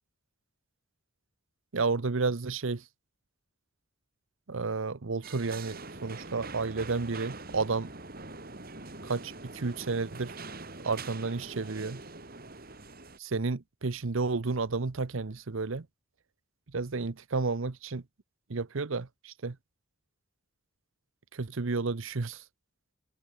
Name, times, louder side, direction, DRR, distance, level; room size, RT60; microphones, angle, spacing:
voice 1, 1.7-2.8 4.5-7.9 9.0-10.3 10.8-12.0 13.2-15.9 16.7-18.0 18.5-19.6 21.3-22.4, right 4 dB, 65° right, 0.8 m, -31 dB
sound 1, 5.2-13.2, right 3 dB, 45° right, 3.1 m, -44 dB
open air
head